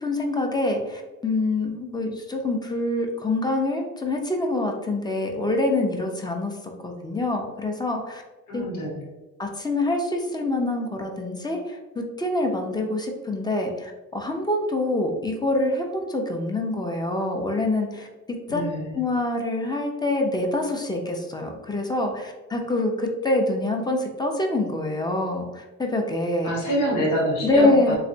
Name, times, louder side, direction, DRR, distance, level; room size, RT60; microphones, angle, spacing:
voice 1, 0.0-6.5 6.8-8.2 8.5-8.6 9.4-18.1 18.5-18.6 18.9-26.5 27.4-28.0, left 2 dB, 15° left, 2 dB, 0.6 m, -25 dB
voice 2, 8.5-8.9 18.5-19.0 26.4-28.0, right 1 dB, 85° left, -2 dB, 1.1 m, -26 dB
3.2 x 2.9 x 2.7 m, 1.1 s
cardioid pair, 90°, 30 cm